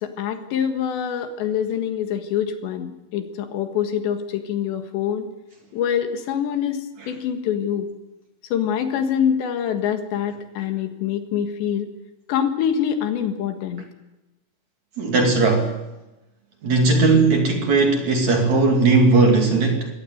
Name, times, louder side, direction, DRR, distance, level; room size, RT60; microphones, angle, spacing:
voice 1, 0.0-5.3 5.7-7.9 8.5-11.9 12.3-13.8, left 8 dB, 75° left, 6 dB, 3.8 m, -25 dB
voice 2, 15.0-15.7 16.6-19.9, right 3 dB, 45° right, 3 dB, 3.4 m, -18 dB
22.0 x 18.0 x 8.0 m, 1.0 s
omnidirectional pair, 5.2 m